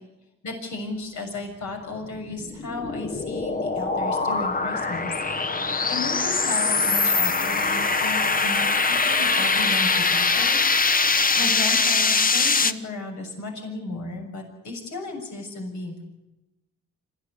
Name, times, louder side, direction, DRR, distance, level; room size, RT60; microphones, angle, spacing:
voice 1, 0.4-5.1 5.4-10.6 11.4-16.0, left 2 dB, 70° left, 3 dB, 6.9 m, -34 dB
sound 1, 2.1-12.7, left 4 dB, 30° left, 1.2 m, -22 dB
27.0 x 15.5 x 9.8 m, 1.0 s
cardioid pair, 90°, 30 cm